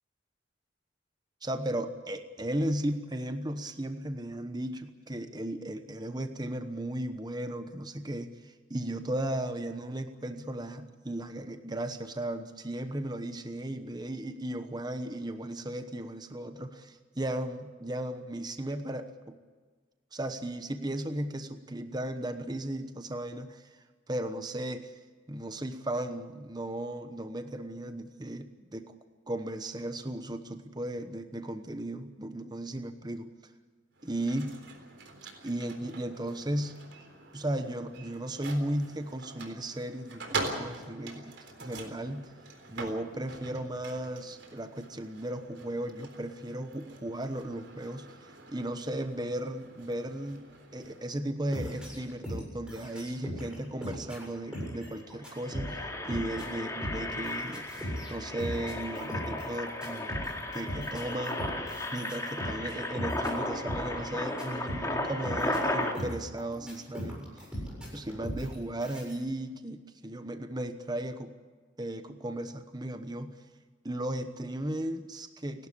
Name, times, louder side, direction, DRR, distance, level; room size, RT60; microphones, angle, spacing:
voice 1, 1.4-19.4 20.1-23.7 24.1-25.0 25.3-28.9 29.3-33.3 34.0-34.5 35.4-36.8 37.3-41.3 41.6-42.3 42.7-50.4 50.7-60.1 60.5-61.5 61.9-67.3 67.9-71.3 71.8-73.3 73.8-75.7, right 1 dB, 20° right, 8 dB, 1.1 m, -36 dB
sound 1, 33.9-51.1, right 3 dB, 70° right, 3.9 m, -44 dB
sound 2, 51.5-53.5 53.8-69.1, equal, 5° right, 7.4 m, -39 dB
Engine, 54.2-54.3 54.5-54.8 55.2-65.9, left 1 dB, 15° left, 2.8 m, -35 dB
30.0 x 12.5 x 8.5 m, 1.4 s
head